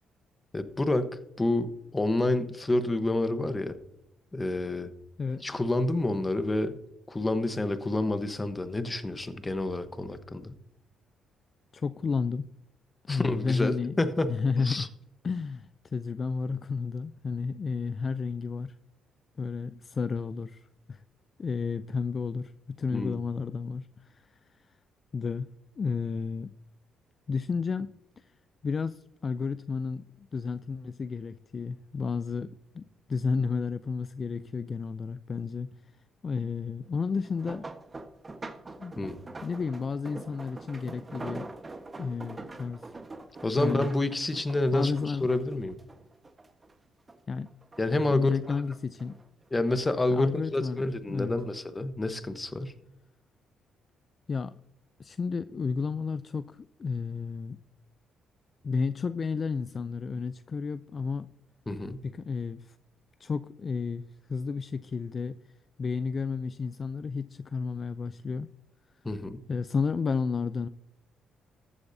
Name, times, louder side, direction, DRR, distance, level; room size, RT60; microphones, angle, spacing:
voice 1, 0.5-1.1 1.4-3.8 4.3-4.9 5.4-6.8 7.1-10.5 13.1-14.9 22.9-23.2 39.0-39.1 43.4-45.7 47.8-48.3 49.5-52.8 61.7-62.0 69.0-69.4, left 2 dB, 20° left, 10 dB, 1.1 m, -28 dB
voice 2, 11.7-12.5 13.1-14.0 14.3-14.9 15.2-18.7 19.4-21.0 21.4-24.4 25.1-25.5 25.8-26.5 27.3-28.3 28.6-35.7 36.2-37.6 38.8-38.9 39.4-41.5 42.0-42.9 43.6-43.9 44.7-45.3 47.3-47.5 48.1-49.2 50.1-51.3 54.3-54.5 55.0-57.6 58.6-61.3 62.0-62.8 63.2-65.4 65.8-68.5 69.5-70.7, left 5 dB, 40° left, 13 dB, 0.4 m, -32 dB
sound 1, 37.1-46.7 47.1-48.0 48.4-49.8 50.5-50.8 51.2-51.3, right 2 dB, 25° right, 1.3 m, -44 dB
14.5 x 8.2 x 2.7 m, 0.80 s
cardioid pair, 85°, 0 cm